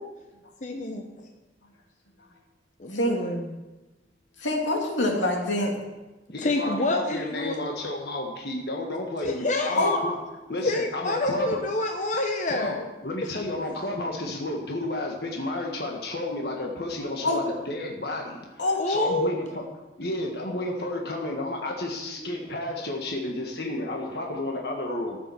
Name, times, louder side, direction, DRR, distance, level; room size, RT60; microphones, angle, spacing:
voice 1, 0.6-1.0 2.8-3.6 6.4-7.6 9.2-10.0 10.6-12.9 18.8-19.3, left 2 dB, 45° left, 3 dB, 0.9 m, -27 dB
voice 2, 4.4-5.7 9.7-9.9 17.2-17.4 18.6-18.8 22.0-22.6, left 1 dB, 90° left, 0 dB, 2.7 m, -26 dB
voice 3, 6.3-10.2 10.5-11.6 12.5-18.6 18.9-19.6 20.0-25.2, left 1 dB, 60° left, 0 dB, 1.5 m, -32 dB
14.0 x 7.1 x 7.0 m, 1.1 s
head